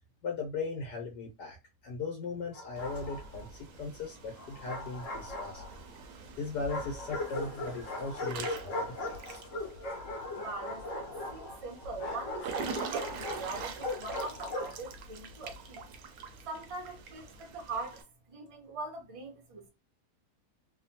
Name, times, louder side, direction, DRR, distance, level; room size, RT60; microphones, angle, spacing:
voice 1, 0.2-1.6 1.8-5.8 6.4-9.4, left 4 dB, 75° left, 1.3 m, -38 dB
Bark, 2.5-3.5 4.4-6.0 6.7-14.8, left 2 dB, 55° left, 1.1 m, -39 dB
Water / Splash splatter / Drip, 2.8-18.0, right 5 dB, 70° right, 0.9 m, -44 dB
voice 2, 10.3-11.1 11.3-15.8 16.5-19.7, right 3 dB, 45° right, 0.4 m, -42 dB
3.1 x 2.1 x 2.7 m
omnidirectional pair, 1.8 m